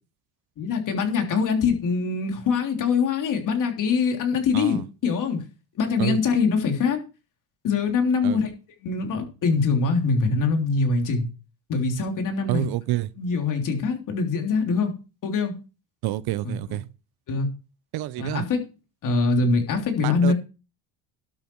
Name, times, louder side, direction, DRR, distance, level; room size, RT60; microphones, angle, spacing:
voice 1, 0.6-5.4 5.7-7.0 7.6-8.5 8.8-11.3 11.7-12.7 13.2-14.9 15.2-15.6 16.4-16.6 17.3-17.5 18.2-18.6 19.0-20.3, left 4 dB, 45° left, 3.4 m, -23 dB
voice 2, 12.5-13.1 16.0-16.8 17.9-18.4 20.0-20.3, right 16 dB, 55° right, 0.8 m, -28 dB
12.0 x 8.9 x 4.7 m
cardioid pair, 135°, 45 cm